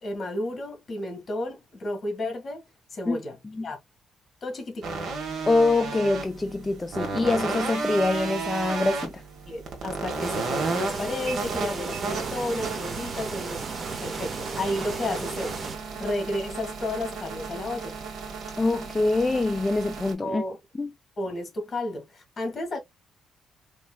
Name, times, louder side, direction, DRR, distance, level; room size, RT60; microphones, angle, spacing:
voice 1, 0.0-2.6 2.9-3.4 3.6-3.8 4.4-5.0 9.5-13.7 14.0-17.9 20.2-20.6 21.2-22.8, left 1 dB, 35° left, 1.8 m, -32 dB
sound 1, 4.8-20.1, right 4 dB, 60° right, 1.4 m, -33 dB
voice 2, 5.5-9.2 18.6-20.4 20.8-20.9, left 2 dB, 15° left, 0.4 m, -24 dB
sound 2, 10.2-15.8, right 4 dB, 40° right, 0.9 m, -35 dB
4.3 x 3.1 x 2.2 m
cardioid pair, 120°, 0 cm